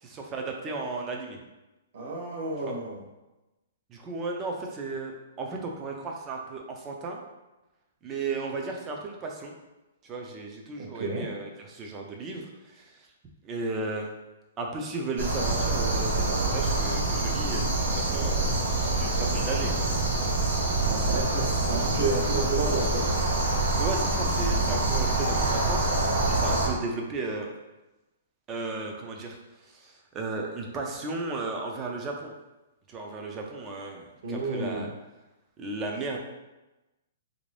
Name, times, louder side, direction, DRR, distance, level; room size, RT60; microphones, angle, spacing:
voice 1, 0.0-1.4 2.7-2.8 3.9-7.2 8.0-9.5 10.0-13.1 13.4-14.1 14.6-18.4 18.8-19.9 23.8-27.5 28.5-29.4 29.6-32.3 32.9-34.9 35.6-36.2, right 3 dB, 15° right, 1 dB, 0.4 m, -35 dB
voice 2, 1.9-3.0 10.8-11.3 20.8-23.1 34.2-34.9, right 3 dB, 45° right, -1 dB, 0.7 m, -31 dB
sound 1, 15.2-26.7, right 2 dB, 85° right, 1.2 m, -26 dB
3.3 x 2.6 x 3.2 m, 1.0 s
hypercardioid pair, 175°, 0 cm